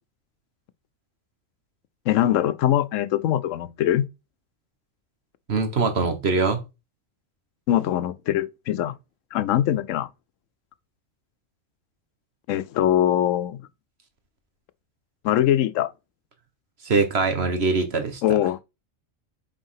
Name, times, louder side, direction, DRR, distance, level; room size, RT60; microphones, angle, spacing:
voice 1, 2.1-4.1 7.7-8.9 9.3-10.1 12.5-13.6 15.2-15.9 18.2-18.6, left 11 dB, 85° left, 1.0 m, -22 dB
voice 2, 5.5-6.6 16.8-18.2, right 4 dB, 55° right, 1.6 m, -22 dB
5.4 x 4.4 x 5.6 m
omnidirectional pair, 1.3 m